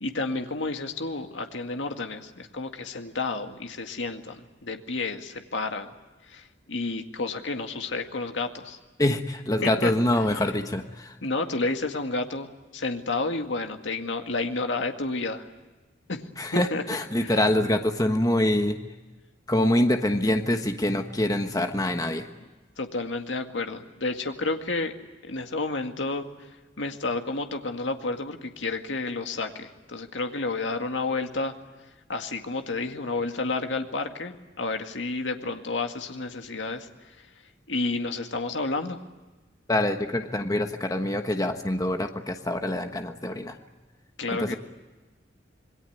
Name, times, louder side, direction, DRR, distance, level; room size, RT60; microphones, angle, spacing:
voice 1, 0.0-5.9 6.3-8.8 9.8-9.9 11.2-15.5 16.1-16.8 17.2-17.3 22.8-24.9 25.2-26.3 26.8-31.5 32.1-36.9 37.7-39.0 44.2-44.6, left 3 dB, 70° left, 5 dB, 2.0 m, -30 dB
voice 2, 9.0-11.1 16.4-18.8 19.5-22.3 39.7-43.6 44.3-44.6, left 1 dB, 20° left, 6 dB, 1.3 m, -25 dB
27.0 x 22.0 x 9.4 m, 1.2 s
head